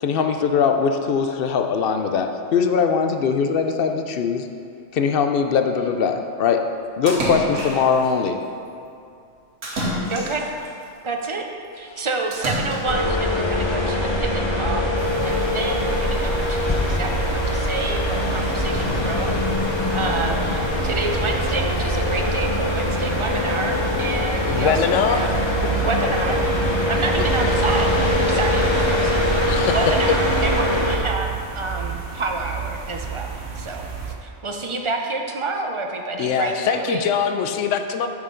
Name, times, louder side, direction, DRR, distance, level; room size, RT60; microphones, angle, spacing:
voice 1, 0.0-4.5 4.9-6.6 7.0-8.4, left 6 dB, 60° left, 5 dB, 0.7 m, -21 dB
Splash splatter, 7.1-8.1 9.6-10.7 12.3-13.1, right 1 dB, 85° right, 1.6 m, -28 dB
voice 2, 10.1-10.5 11.0-11.5 11.7-14.9 15.2-19.3 19.9-20.6 20.8-25.3 25.7-26.4 26.9-33.3 33.5-37.0, right 3 dB, 35° right, 2 dB, 0.5 m, -28 dB
sound 1, 12.9-31.0, left 1 dB, 25° left, 0.9 m, -23 dB
sound 2, 15.0-34.1, right 8 dB, 60° right, 1.0 m, -31 dB
voice 3, 24.5-25.3 29.5-29.8 30.1-30.2 30.7-30.8 36.2-38.1, left 7 dB, 85° left, 7 dB, 0.9 m, -22 dB
9.0 x 6.5 x 3.8 m, 2.5 s
omnidirectional pair, 1.3 m